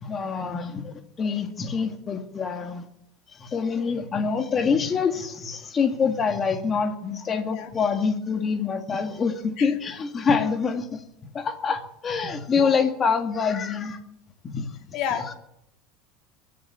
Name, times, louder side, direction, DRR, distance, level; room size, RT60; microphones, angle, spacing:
voice 1, 0.0-2.8 3.3-11.0 11.3-14.0 14.4-14.7, left 5 dB, 25° left, 7 dB, 1.8 m, -26 dB
voice 2, 14.9-15.3, left 8 dB, 50° left, 6 dB, 2.3 m, -31 dB
23.5 x 8.2 x 7.3 m, 0.80 s
supercardioid pair, 145°, 0 cm